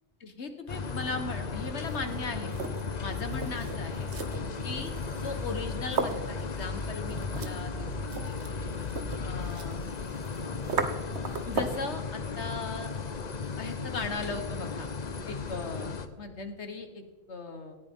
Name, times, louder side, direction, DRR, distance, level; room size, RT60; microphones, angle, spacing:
voice 1, 0.2-2.5 3.0-4.1 4.6-7.9 8.3-8.4 9.2-9.8 11.5-12.9 13.6-14.9 15.3-17.8, left 3 dB, 65° left, 7 dB, 1.6 m, -38 dB
sound 1, 0.7-16.1, left 4 dB, 40° left, 0.9 m, -35 dB
sound 2, 1.7-11.9, right 4 dB, 65° right, 1.3 m, -37 dB
18.5 x 14.0 x 3.7 m, 1.4 s
omnidirectional pair, 1.2 m